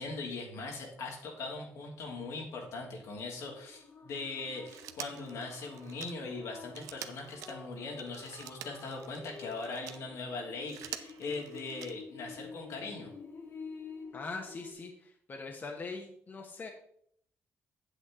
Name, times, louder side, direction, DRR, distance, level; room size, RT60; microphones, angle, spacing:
voice 1, 0.0-13.1, left 3 dB, 75° left, 0 dB, 2.6 m, -40 dB
sound 1, 2.5-14.7, left 5 dB, 55° left, 1.9 m, -50 dB
Telephone, 4.6-10.1 10.5-12.2 13.5-13.6, right 12 dB, 90° right, 0.6 m, -47 dB
voice 2, 14.1-16.7, left 4 dB, 35° left, 3 dB, 1.2 m, -42 dB
8.4 x 7.7 x 3.7 m, 0.67 s
cardioid pair, 85°, 5 cm